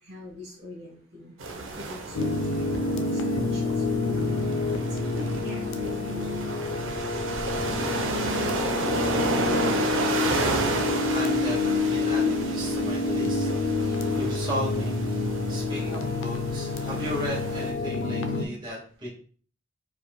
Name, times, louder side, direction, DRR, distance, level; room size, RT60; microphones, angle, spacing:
voice 1, 0.0-1.3 1.8-4.0 5.0-6.9 13.8-14.0, left 1 dB, 55° right, -3 dB, 1.4 m, -44 dB
sound 1, 1.4-17.7, right 3 dB, 75° right, 0.7 m, -32 dB
sound 2, 2.1-18.5, left 3 dB, 65° left, 0.5 m, -28 dB
voice 2, 11.1-13.5 14.1-15.0 15.5-19.1, equal, 25° right, -4 dB, 1.6 m, -35 dB
4.7 x 3.6 x 2.2 m, 0.43 s
head